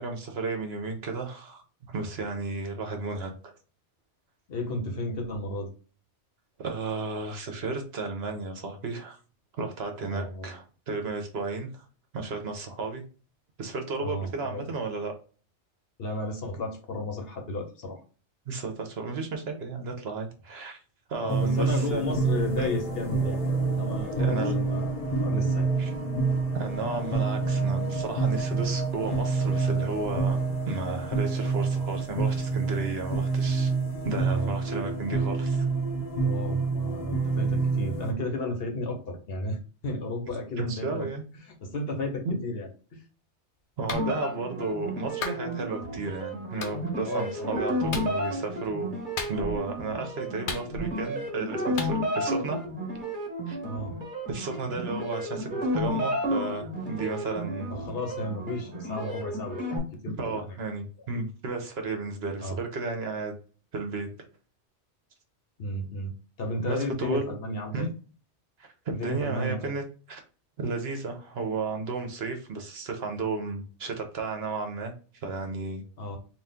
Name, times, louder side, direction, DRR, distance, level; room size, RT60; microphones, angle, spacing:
voice 1, 0.0-3.5 6.6-9.2 9.6-11.8 12.1-13.0 13.6-15.1 18.5-20.8 21.1-22.2 22.6-22.7 24.2-24.8 25.8-25.9 26.5-30.4 30.7-33.7 34.0-35.6 40.6-41.2 42.2-42.4 43.8-48.9 49.3-52.6 53.5-53.6 54.3-57.7 60.2-63.4 63.7-64.1 66.7-67.4 67.7-67.9 68.6-70.2 70.6-75.8, right 3 dB, 65° right, 4 dB, 1.1 m, -33 dB
voice 2, 4.5-5.7 10.0-10.5 14.0-14.7 16.0-18.0 21.2-23.4 23.8-24.9 25.2-25.7 34.2-34.6 36.2-41.1 41.4-43.0 47.0-47.6 53.6-53.9 57.7-59.6 60.0-60.5 62.4-62.6 65.6-66.1 66.4-67.9 68.9-69.7 76.0-76.2, left 1 dB, 60° left, 4 dB, 1.0 m, -33 dB
sound 1, 21.3-38.1, right 4 dB, 35° left, 1.0 m, -27 dB
Clapping, 43.9-44.1 45.2-45.4 46.6-46.8 47.9-48.1 49.2-49.6 50.5-51.0 51.8-51.9, left 4 dB, 80° left, 1.0 m, -34 dB
sound 2, 43.9-59.8, equal, 45° right, 1.5 m, -32 dB
4.1 x 2.4 x 3.5 m, 0.37 s
omnidirectional pair, 1.2 m